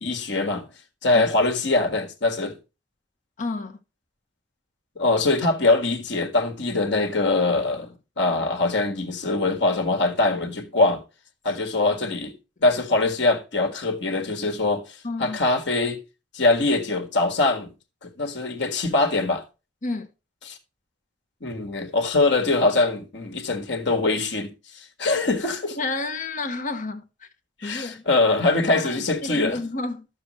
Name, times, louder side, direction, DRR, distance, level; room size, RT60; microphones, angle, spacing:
voice 1, 0.0-0.6 1.0-2.6 4.9-7.9 8.2-11.0 11.4-12.3 12.6-14.8 15.2-16.0 16.3-17.7 18.0-19.4 20.5-20.6 21.4-24.5 25.0-25.8 27.6-29.6, left 2 dB, 70° left, 1.7 m, -23 dB
voice 2, 3.4-3.8 15.0-15.4 19.8-20.1 25.8-27.1 27.6-28.0 28.7-30.1, left 3 dB, 45° left, 1.1 m, -30 dB
11.5 x 6.9 x 3.0 m
head